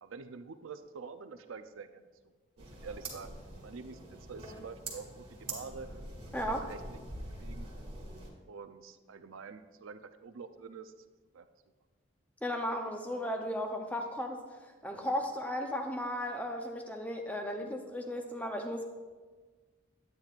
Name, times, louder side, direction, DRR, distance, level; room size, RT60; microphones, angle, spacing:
voice 1, 0.0-2.1 2.6-3.4 3.6-4.0 4.3-5.9 6.3-7.7 8.5-10.9 11.3-11.5, right 5 dB, 75° right, 10 dB, 0.5 m, -47 dB
sound 1, 2.6-8.3, right 2 dB, 30° right, 1.5 m, -44 dB
voice 2, 6.3-6.6 12.4-14.4 14.8-18.8, equal, 5° left, 4 dB, 0.6 m, -35 dB
9.4 x 9.0 x 2.4 m, 1.4 s
head